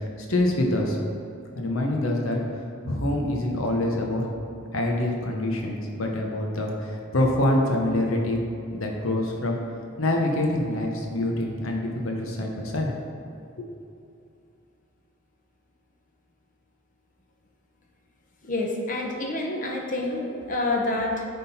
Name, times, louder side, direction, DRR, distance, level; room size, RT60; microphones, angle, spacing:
voice 1, 0.2-1.0 1.5-2.4 2.8-4.2 4.7-8.4 8.7-9.6 10.0-13.0 13.6-13.7, left 1 dB, 90° left, 0 dB, 0.9 m, -25 dB
voice 2, 18.4-21.3, left 2 dB, 40° left, 1 dB, 0.8 m, -28 dB
9.3 x 3.7 x 4.3 m, 2.6 s
head